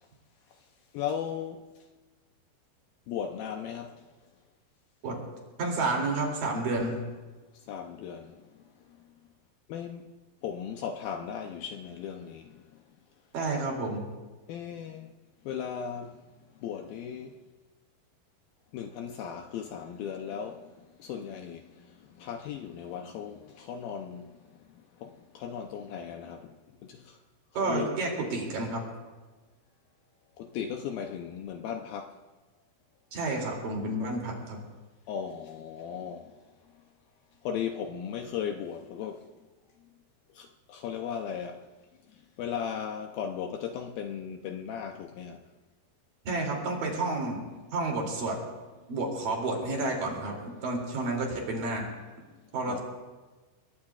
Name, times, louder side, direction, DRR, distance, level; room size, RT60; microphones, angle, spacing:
voice 1, 0.9-1.6 3.1-4.0 7.7-8.5 8.9-9.0 9.7-10.1 10.4-12.6 14.5-15.1 15.5-16.2 16.6-17.3 18.7-20.7 21.0-24.4 25.0-26.6 26.8-27.2 27.6-27.9 30.4-32.2 35.1-36.4 37.4-39.3 40.3-41.7 42.1-45.4 52.7-52.8, left 8 dB, 75° left, 2.3 m, -37 dB
voice 2, 5.6-7.0 13.3-14.1 27.5-28.8 33.1-34.6 46.3-47.4 47.7-48.4 48.9-51.8 52.5-52.8, right 2 dB, 55° right, 4.3 m, -30 dB
27.5 x 21.0 x 2.4 m
omnidirectional pair, 4.8 m